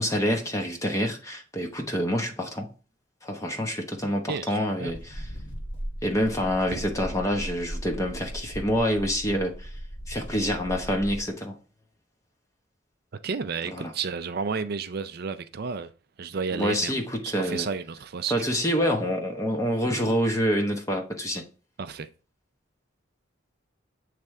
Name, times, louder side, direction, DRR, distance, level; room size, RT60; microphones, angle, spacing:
voice 1, 0.0-2.7 3.2-5.3 6.0-9.7 10.1-11.6 13.7-13.9 16.5-17.7 18.3-21.4, equal, 15° left, 0.9 m, -27 dB
voice 2, 4.3-4.9 13.2-15.9 16.2-18.3 21.8-22.1, right 5 dB, 50° right, 0.5 m, -32 dB
sound 1, 4.9-11.3, equal, 60° left, 1.2 m, -38 dB
8.0 x 3.3 x 3.6 m
head